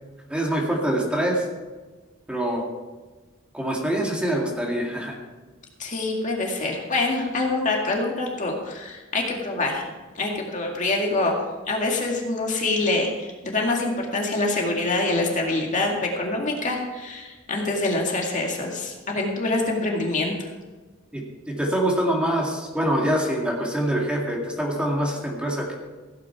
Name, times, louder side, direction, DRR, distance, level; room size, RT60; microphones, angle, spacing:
voice 1, 0.3-1.4 2.3-2.6 3.5-5.2 21.1-25.7, right 1 dB, 5° right, -2 dB, 2.1 m, -25 dB
voice 2, 5.8-9.8 10.2-11.3 11.7-20.3, left 2 dB, 40° left, 0 dB, 2.1 m, -25 dB
16.0 x 9.0 x 4.7 m, 1.3 s
head